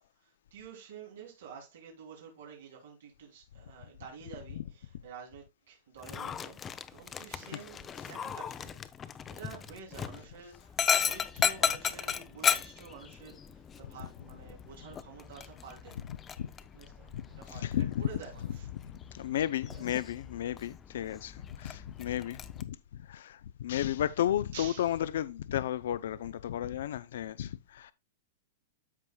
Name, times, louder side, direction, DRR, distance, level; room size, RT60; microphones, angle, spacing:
voice 1, 0.2-16.1 16.7-18.7 19.7-20.0 24.5-25.0, right 6 dB, 75° right, 2.9 m, -49 dB
Dog, 6.0-22.6, left 7 dB, 15° left, 0.5 m, -36 dB
voice 2, 17.1-18.1 18.4-22.8 23.0-27.9, left 11 dB, 70° left, 0.4 m, -33 dB
13.0 x 4.7 x 2.2 m
supercardioid pair, 165°, 0 cm